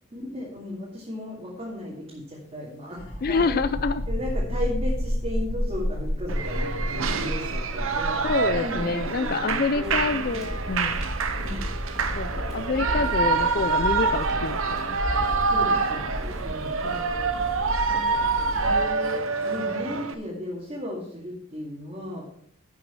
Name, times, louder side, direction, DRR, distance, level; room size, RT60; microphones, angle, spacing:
voice 1, 0.1-3.6 4.1-10.4 11.4-11.7 15.5-16.8 17.8-18.3 18.5-22.3, left 1 dB, 30° right, -6 dB, 2.2 m, -36 dB
sound 1, 2.9-16.3, equal, 80° left, 3.1 m, -31 dB
voice 2, 3.2-4.0 8.2-11.0 12.2-15.0 16.8-17.2, left 4 dB, 45° left, 12 dB, 0.4 m, -27 dB
Shout / Cheering, 6.3-20.1, right 4 dB, 75° right, 0.8 m, -26 dB
sound 2, 9.8-18.8, equal, ahead, 2.9 m, -34 dB
11.0 x 6.1 x 5.5 m, 0.68 s
head